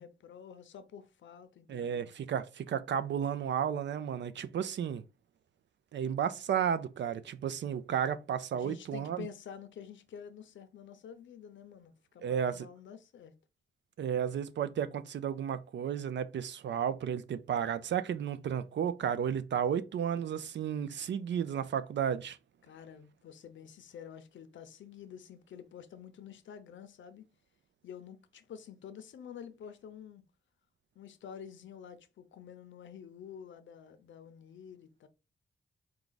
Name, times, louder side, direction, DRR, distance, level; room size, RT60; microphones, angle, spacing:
voice 1, 0.0-2.1 4.4-4.5 8.5-13.3 22.6-27.2 27.8-30.2 30.9-35.1, left 8 dB, 80° left, 0.7 m, -49 dB
voice 2, 1.7-5.0 5.9-9.3 12.2-12.7 14.0-22.4, right 8 dB, 70° right, 0.5 m, -33 dB
4.7 x 2.3 x 3.9 m
wide cardioid pair, 110°, 19 cm